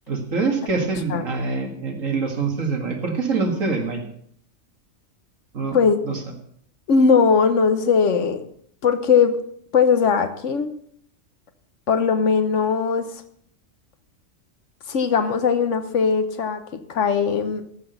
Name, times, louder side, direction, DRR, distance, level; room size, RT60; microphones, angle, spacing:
voice 1, 0.1-4.0 5.5-5.8 6.0-6.2, right 4 dB, 80° right, 2 dB, 2.3 m, -25 dB
voice 2, 6.9-8.5 8.8-9.4 9.7-10.7 11.9-13.1 14.9-16.6 16.9-17.6, left 5 dB, 70° left, 10 dB, 1.3 m, -19 dB
14.0 x 6.0 x 6.7 m, 0.65 s
omnidirectional pair, 1.3 m